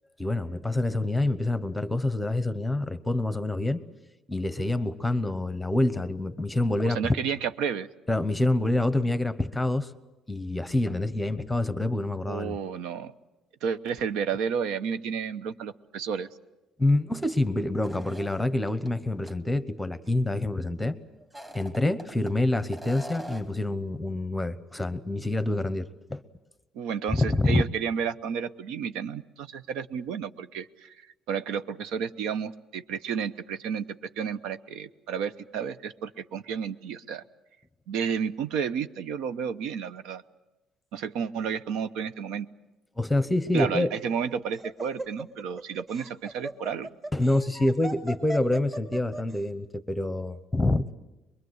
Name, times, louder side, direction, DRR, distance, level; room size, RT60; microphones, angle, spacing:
voice 1, 0.2-3.8 4.3-7.1 8.1-9.9 10.3-12.6 16.8-21.0 21.5-26.2 27.1-27.6 43.0-43.9 47.1-50.8, left 2 dB, 5° left, 13 dB, 0.9 m, -26 dB
voice 2, 6.8-7.9 12.3-13.1 13.6-16.3 26.7-30.9 31.3-33.8 34.2-37.2 37.9-40.2 40.9-42.5 43.5-46.9, right 7 dB, 90° right, 12 dB, 1.0 m, -31 dB
sound 1, 17.8-18.9 19.3-19.4 21.2-22.3 22.7-23.6, equal, 15° right, 1.9 m, -42 dB
Laughter, 43.9-49.4, right 1 dB, 30° right, 2.5 m, -38 dB
23.5 x 22.5 x 8.0 m, 1.0 s
cardioid pair, 155°, 0 cm